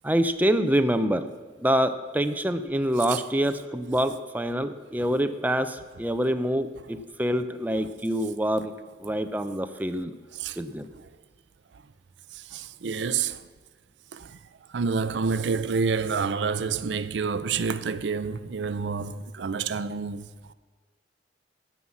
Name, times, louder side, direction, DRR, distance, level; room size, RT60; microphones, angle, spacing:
voice 1, 0.0-1.3 1.6-8.7 9.0-10.1 10.6-10.9, equal, 10° right, 0.5 m, -26 dB
voice 2, 12.3-13.4 14.1-14.4 14.7-20.3, right 5 dB, 75° right, 0.5 m, -28 dB
16.0 x 5.5 x 7.2 m
head